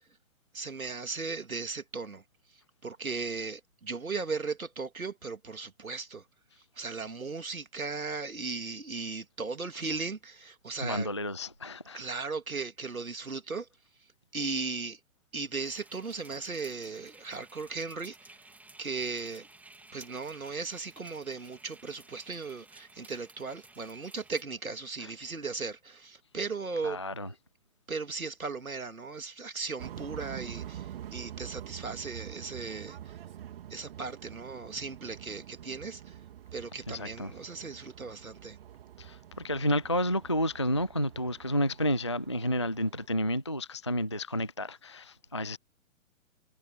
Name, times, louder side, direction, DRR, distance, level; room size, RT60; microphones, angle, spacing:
voice 1, 0.5-2.2 2.8-6.2 6.8-11.1 11.9-13.7 14.3-15.0 15.3-18.2 18.8-19.5 19.9-27.0 27.9-33.2 33.7-36.2 36.5-38.6, right 4 dB, 80° right, 2.7 m, -37 dB
voice 2, 10.8-12.0 25.0-25.1 26.8-27.3 36.9-37.4 39.0-45.6, equal, 25° left, 0.3 m, -31 dB
sound 1, 15.6-24.4, right 2 dB, 5° right, 2.9 m, -55 dB
sound 2, 29.8-43.1, right 11 dB, 45° right, 3.4 m, -46 dB
figure-of-eight pair, 125°, 41 cm